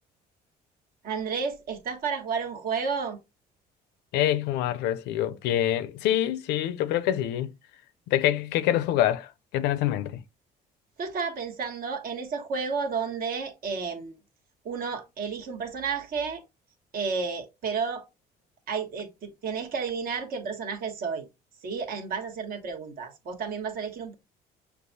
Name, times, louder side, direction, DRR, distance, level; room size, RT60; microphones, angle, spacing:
voice 1, 1.0-3.2 11.0-14.1 14.6-16.4 16.9-18.0 18.7-21.3 21.6-24.1, right 5 dB, 60° right, 1.3 m, -31 dB
voice 2, 4.1-7.5 8.1-10.2, left 12 dB, 90° left, 0.5 m, -26 dB
6.6 x 2.3 x 2.6 m
cardioid pair, 110°, 17 cm